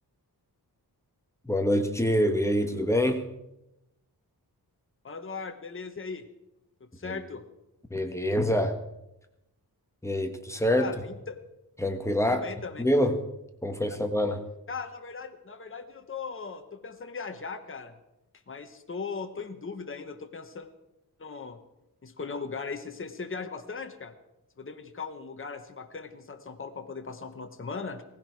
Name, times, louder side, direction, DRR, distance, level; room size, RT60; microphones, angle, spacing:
voice 1, 1.4-3.2 7.0-7.2 7.9-8.7 10.0-10.9 11.8-12.5 12.8-13.2 13.6-14.4, equal, 5° left, 5 dB, 1.5 m, -25 dB
voice 2, 5.0-6.2 6.8-7.4 10.7-11.4 12.2-12.8 14.7-17.9 18.5-20.7 21.2-21.6 22.0-24.1 24.6-28.0, left 5 dB, 30° left, 6 dB, 1.2 m, -38 dB
18.0 x 15.5 x 4.7 m, 0.89 s
wide cardioid pair, 110°, 39 cm